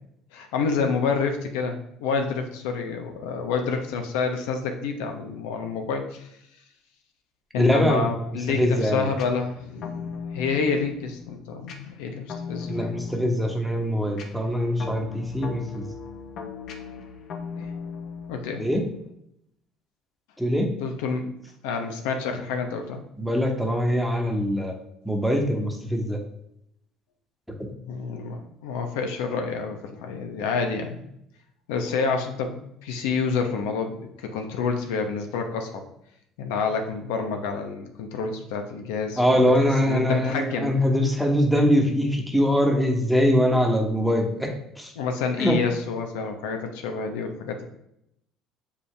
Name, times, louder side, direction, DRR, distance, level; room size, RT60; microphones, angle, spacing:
voice 1, 0.3-6.3 7.5-12.9 17.6-17.7 18.3-18.7 20.8-21.3 21.6-23.0 27.8-31.0 31.7-35.8 36.4-40.7 45.0-47.6, left 5 dB, 90° left, 4 dB, 0.8 m, -28 dB
voice 2, 7.6-8.1 8.5-9.1 12.7-15.9 18.6-18.8 20.4-20.7 23.2-24.7 25.0-26.2 39.2-44.5 44.8-44.9 45.4-45.6, equal, ahead, 2 dB, 1.2 m, -22 dB
sound 1, 9.1-19.1, left 5 dB, 60° left, 1.0 m, -39 dB
6.8 x 4.9 x 3.4 m, 0.78 s
supercardioid pair, 105°, 0 cm